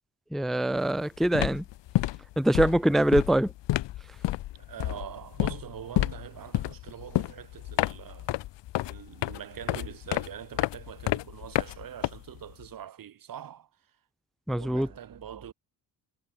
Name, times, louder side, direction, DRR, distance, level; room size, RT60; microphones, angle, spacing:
voice 1, 0.3-1.6 2.4-3.5 14.5-14.9, right 1 dB, ahead, 0.5 m, -24 dB
sound 1, 0.7-1.0 1.2-12.6, left 15 dB, 90° left, 1.8 m, -30 dB
voice 2, 4.7-8.3 8.8-13.7 14.5-15.5, right 10 dB, 55° right, 1.9 m, -43 dB
cardioid pair, 115°, 42 cm